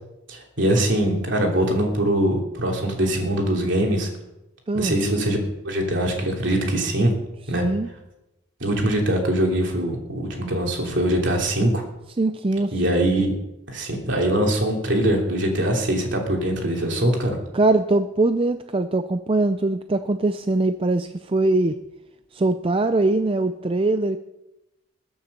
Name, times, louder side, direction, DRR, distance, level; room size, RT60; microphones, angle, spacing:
voice 1, 0.3-4.1 4.7-5.4 5.6-7.1 7.5-7.6 8.6-11.8 12.7-13.3 13.7-17.4, right 1 dB, 60° right, 1 dB, 3.1 m, -22 dB
voice 2, 4.7-5.0 7.6-7.9 12.2-12.7 17.5-21.8 22.3-24.2, right 2 dB, 25° right, 9 dB, 0.4 m, -22 dB
21.0 x 7.1 x 6.7 m, 0.94 s
head